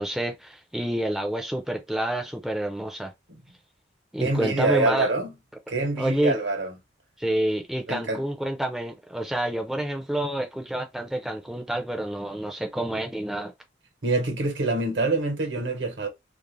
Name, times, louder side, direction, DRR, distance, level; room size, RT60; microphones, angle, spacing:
voice 1, 0.0-3.1 4.1-5.1 6.0-6.4 7.2-13.5, right 1 dB, ahead, 0.4 m, -28 dB
voice 2, 4.2-5.3 5.7-6.7 7.9-8.2 14.0-16.1, right 2 dB, 70° right, 1.0 m, -25 dB
2.4 x 2.0 x 3.0 m
head